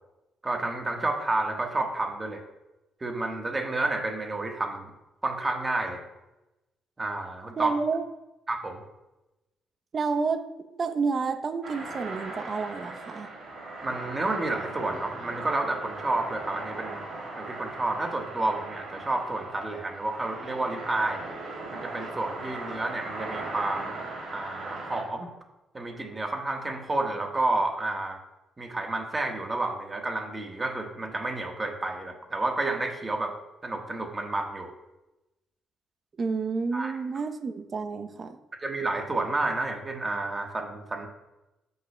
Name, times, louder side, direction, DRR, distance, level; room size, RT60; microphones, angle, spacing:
voice 1, 0.4-2.4 3.0-4.9 5.2-6.0 7.0-7.7 8.5-8.8 13.8-17.0 17.3-21.2 21.7-24.0 24.3-25.3 25.7-28.2 28.6-33.3 33.6-34.7 36.7-36.9 38.6-41.1, right 2 dB, 25° right, 3 dB, 1.3 m, -30 dB
voice 2, 7.6-8.0 9.9-10.4 10.7-13.3 36.2-38.4, right 4 dB, 40° right, 7 dB, 0.7 m, -29 dB
sound 1, 11.6-25.0, right 2 dB, 65° right, 2.7 m, -38 dB
14.5 x 5.5 x 2.2 m, 0.98 s
cardioid pair, 90°, 0 cm